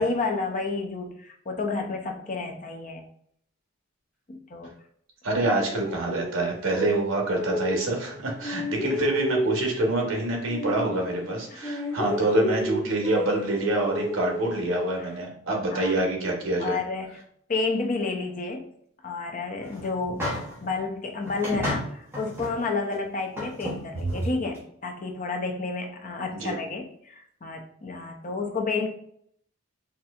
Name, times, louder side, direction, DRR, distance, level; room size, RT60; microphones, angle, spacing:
voice 1, 0.0-3.0 4.3-4.7 9.8-9.9 11.5-11.6 15.0-15.1 15.7-16.0 16.6-17.2 17.5-18.7 19.0-20.3 20.6-28.9, left 3 dB, 40° left, 3 dB, 0.5 m, -30 dB
voice 2, 5.2-16.8 26.3-26.5, right 2 dB, 75° right, 0 dB, 1.0 m, -26 dB
sound 1, 5.3-8.1 8.4-11.4 11.6-15.1, equal, 15° left, 1.5 m, -31 dB
sound 2, 19.6-20.7 21.3-22.6 22.9-23.0 23.4-24.6, equal, 10° right, 0.9 m, -32 dB
4.1 x 2.6 x 2.4 m, 0.67 s
head